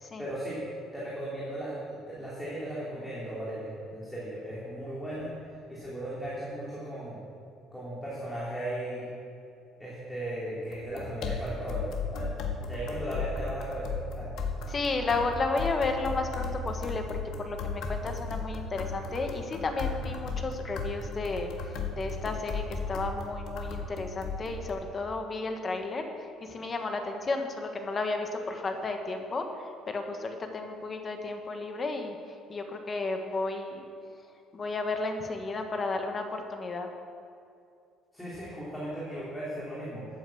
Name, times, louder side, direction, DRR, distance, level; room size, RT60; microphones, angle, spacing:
voice 1, 0.2-0.6 0.9-5.3 5.7-7.2 7.7-9.1 9.8-12.3 12.6-13.9 14.2-14.3 38.1-40.1, right 1 dB, 5° left, -8 dB, 3.0 m, -36 dB
sound 1, 10.7-24.7, left 4 dB, 60° left, 1.6 m, -36 dB
voice 2, 14.7-17.2 17.4-21.5 22.0-26.0 26.5-29.4 29.9-32.1 32.5-33.8 34.5-36.9, left 3 dB, 25° left, 5 dB, 1.2 m, -32 dB
13.0 x 9.1 x 7.7 m, 2.5 s
cardioid pair, 170°, 0 cm